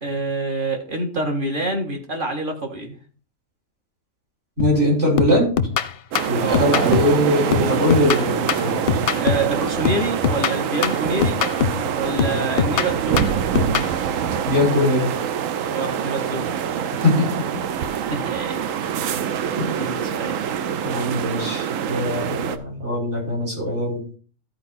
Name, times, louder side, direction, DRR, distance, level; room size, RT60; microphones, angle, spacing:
voice 1, 0.0-3.0 6.4-6.7 9.2-11.4 11.9-13.3 15.7-16.5 18.0-18.6 19.6-20.4, right 2 dB, 40° right, 2 dB, 1.8 m, -26 dB
sound 1, 4.6-4.9 5.2-7.2 7.5-9.5 9.8-11.9 12.2-13.9, left 7 dB, 55° left, 0.7 m, -23 dB
voice 2, 4.6-5.5 6.3-8.8 14.5-15.1 17.0-17.4 19.6-19.7 20.8-24.0, left 1 dB, 60° right, -3 dB, 5.2 m, -21 dB
sound 2, 6.1-22.6, right 8 dB, 75° right, 1.1 m, -25 dB
14.0 x 4.7 x 4.3 m, 0.40 s
omnidirectional pair, 1.4 m